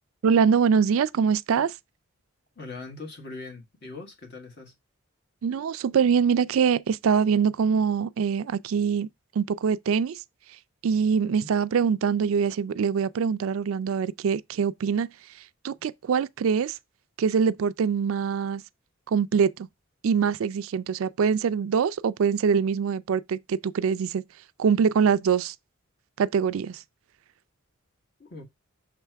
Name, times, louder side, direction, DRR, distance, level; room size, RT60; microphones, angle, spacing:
voice 1, 0.2-1.8 5.4-9.1 9.4-10.2 10.8-15.1 15.6-16.8 17.2-18.6 19.1-19.7 20.0-24.2 24.6-25.5 26.2-26.8, right 6 dB, 75° right, 0.4 m, -24 dB
voice 2, 2.5-4.7 11.2-11.5 28.2-28.4, left 3 dB, 50° left, 1.7 m, -41 dB
6.3 x 3.4 x 4.6 m
head